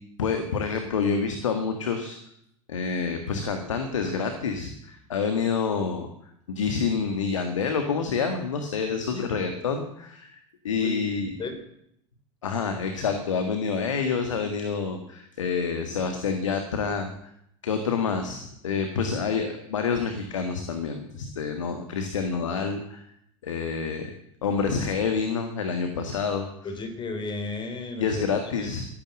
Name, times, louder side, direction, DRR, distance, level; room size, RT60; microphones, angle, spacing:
voice 1, 0.2-2.2 2.7-6.1 6.5-11.3 12.4-17.1 17.6-23.0 23.4-24.1 24.4-26.5 28.0-28.9, left 5 dB, 80° left, 6 dB, 1.7 m, -28 dB
voice 2, 8.9-9.2 10.7-10.9 11.4-11.6 26.6-28.7, left 3 dB, 30° left, 6 dB, 3.4 m, -34 dB
13.5 x 11.5 x 7.7 m, 0.74 s
figure-of-eight pair, 75°, 16 cm